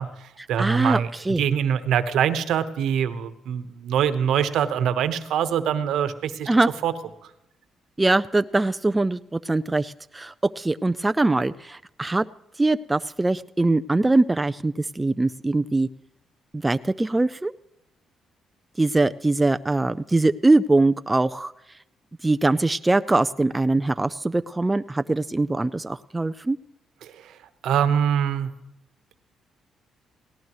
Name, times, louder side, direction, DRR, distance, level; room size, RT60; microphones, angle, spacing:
voice 1, 0.0-1.1 1.4-6.5 6.8-6.9 27.0-27.4 27.6-28.5, right 8 dB, 80° right, 11 dB, 1.1 m, -24 dB
voice 2, 0.6-1.4 6.5-6.7 8.0-12.2 12.6-15.9 16.5-17.5 18.8-21.5 22.2-26.6, right 2 dB, 15° right, 11 dB, 0.4 m, -22 dB
18.5 x 17.5 x 3.1 m, 0.88 s
cardioid pair, 90°, 0 cm